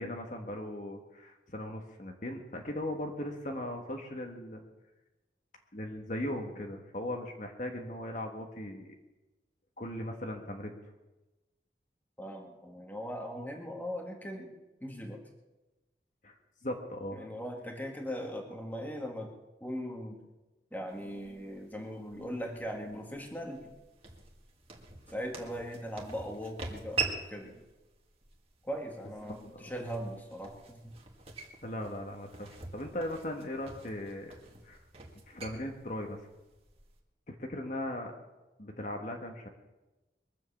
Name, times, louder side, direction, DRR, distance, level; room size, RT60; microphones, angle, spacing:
voice 1, 0.0-4.6 5.7-8.9 9.8-10.8 16.2-16.3 16.6-17.2 29.6-29.7 31.6-34.3 34.6-34.8 35.3-36.3 37.3-38.1 38.6-39.5, left 1 dB, 45° left, 3 dB, 1.5 m, -38 dB
voice 2, 12.2-14.5 14.8-15.2 17.1-19.3 19.6-20.2 20.7-23.7 25.1-27.6 28.6-30.9, equal, 10° left, 2 dB, 1.9 m, -39 dB
sound 1, 20.9-37.0, right 4 dB, 35° right, 2.0 m, -44 dB
22.5 x 7.7 x 7.2 m, 1.1 s
head